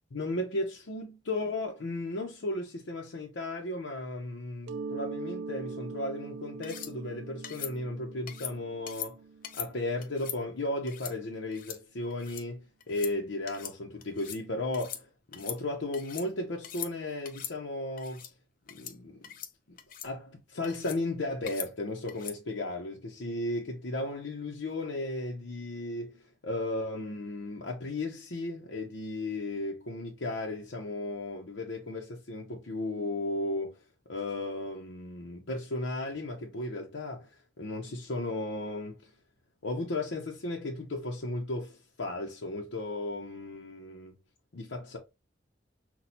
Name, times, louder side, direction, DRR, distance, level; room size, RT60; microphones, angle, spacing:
voice 1, 0.1-9.2 9.5-18.2 18.7-19.3 19.7-19.8 20.0-33.8 34.1-37.3 37.6-39.1 39.6-44.2 44.5-45.0, left 2 dB, 85° left, 0.7 m, -35 dB
Mallet percussion, 4.7-10.2, right 4 dB, 70° right, 0.3 m, -42 dB
sound 1, 6.6-6.9 7.4-7.7 8.3-8.5 8.9-9.1 9.4-9.7 10.0-10.4 10.9-11.1 11.5-11.8 12.1-12.4 12.8-13.1 13.5-13.8 14.0-14.4 14.7-15.0 15.3-16.3 16.6-16.9 17.3-17.5 18.0-18.3 18.7-19.0 19.2-19.5 19.8-20.1 20.6-21.0 21.5-21.7 22.1-22.4, left 10 dB, 50° left, 0.5 m, -41 dB
5.9 x 2.3 x 2.7 m
head